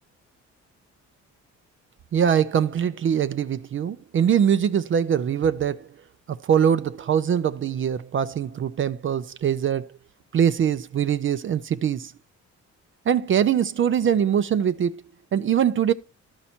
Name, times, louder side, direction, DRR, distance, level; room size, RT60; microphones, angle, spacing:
voice 1, 2.1-5.9 6.3-9.9 10.3-12.1 13.1-14.9 15.3-15.9, right 8 dB, 45° right, 0.5 m, -22 dB
12.5 x 4.3 x 4.3 m
cardioid pair, 90°, 30 cm